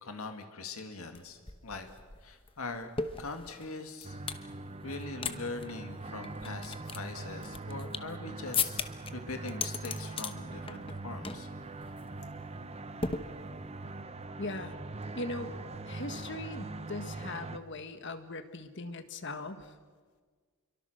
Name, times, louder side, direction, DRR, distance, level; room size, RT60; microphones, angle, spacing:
voice 1, 0.0-1.4 1.6-1.9 2.2-2.9 3.2-4.2 4.8-8.8 9.1-11.5, left 3 dB, 80° left, 6 dB, 2.1 m, -41 dB
sound 1, 1.1-1.2 1.5-4.5 4.9-5.4 5.6-5.7 6.2-8.2 8.5-9.1 9.5-10.3 10.7-11.0 11.2-11.5 11.8-12.0 13.0-13.8, left 5 dB, 25° left, 1.0 m, -36 dB
sound 2, 4.0-17.6, right 2 dB, 30° right, 0.9 m, -42 dB
voice 2, 14.4-14.8 15.1-15.5 15.8-19.7, left 2 dB, 55° left, 9 dB, 1.6 m, -40 dB
27.5 x 23.5 x 6.6 m, 1.5 s
head